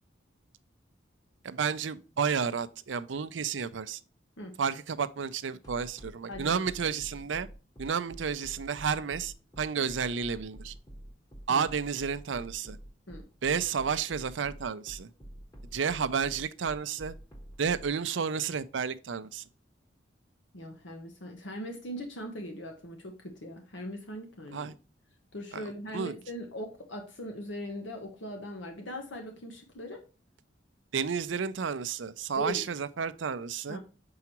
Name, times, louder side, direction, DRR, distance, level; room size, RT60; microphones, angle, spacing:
voice 1, 1.4-4.0 4.6-7.5 7.8-10.7 11.5-12.8 13.4-15.1 15.7-17.1 17.6-19.4 24.5-24.8 25.5-25.6 25.9-26.1 30.9-33.8, right 6 dB, 75° right, 0.5 m, -31 dB
sound 1, 5.6-17.9, right 1 dB, 20° left, 1.3 m, -47 dB
voice 2, 6.3-6.6 11.5-11.7 13.1-13.3 20.5-24.7 25.3-30.0 32.4-32.6 33.7-33.8, equal, 70° left, 1.1 m, -40 dB
6.9 x 4.8 x 2.9 m
head